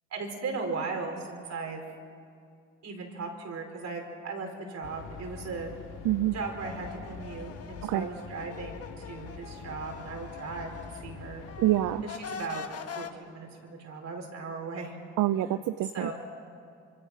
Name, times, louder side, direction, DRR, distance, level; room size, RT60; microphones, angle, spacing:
voice 1, 0.1-1.8 2.8-5.7 6.3-11.5 12.0-15.0 15.9-16.1, right 4 dB, 60° right, 2 dB, 4.8 m, -37 dB
sound 1, 4.8-12.0, left 5 dB, 85° left, 2.5 m, -45 dB
voice 2, 6.0-6.3 7.8-8.1 11.6-12.0 15.2-16.1, right 14 dB, 85° right, 12 dB, 0.6 m, -26 dB
sound 2, 6.4-11.1 11.4-13.1, left 6 dB, 55° left, 1.4 m, -44 dB
25.5 x 24.5 x 6.2 m, 2.3 s
cardioid pair, 90°, 30 cm